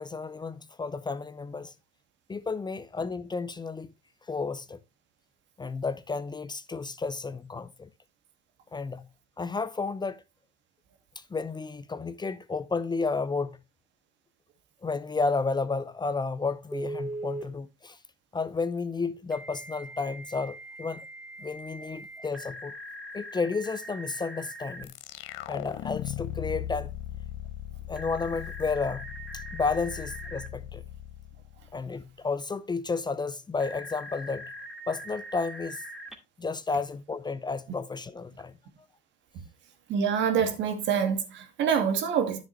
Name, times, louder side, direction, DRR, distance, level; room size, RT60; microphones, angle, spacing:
voice 1, 0.0-1.7 2.3-3.9 4.3-4.8 5.6-7.9 8.7-9.0 9.4-10.2 11.2-13.6 14.8-18.0 18.3-21.1 21.4-22.7 23.1-24.9 25.5-26.9 27.9-29.1 29.3-30.8 31.7-34.5 34.9-35.8 36.4-38.5, left 4 dB, 20° left, 0.6 m, -32 dB
Telephone, 16.7-17.5 19.3-24.8 27.9-30.5 33.6-36.1, right 1 dB, ahead, 2.1 m, -41 dB
sound 1, 24.8-32.1, left 12 dB, 70° left, 0.9 m, -39 dB
voice 2, 39.9-42.4, right 7 dB, 60° right, 2.3 m, -26 dB
9.8 x 7.2 x 3.2 m
supercardioid pair, 80°, 21 cm